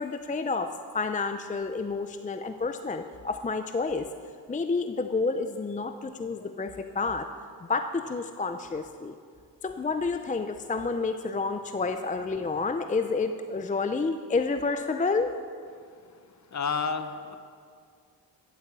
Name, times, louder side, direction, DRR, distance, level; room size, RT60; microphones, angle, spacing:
voice 1, 0.0-4.1 4.5-7.3 7.7-9.1 9.6-15.3, left 4 dB, 20° left, 8 dB, 0.5 m, -29 dB
voice 2, 16.5-17.4, left 5 dB, 40° left, 10 dB, 1.0 m, -30 dB
14.5 x 8.3 x 7.5 m, 2.2 s
cardioid pair, 90°, 42 cm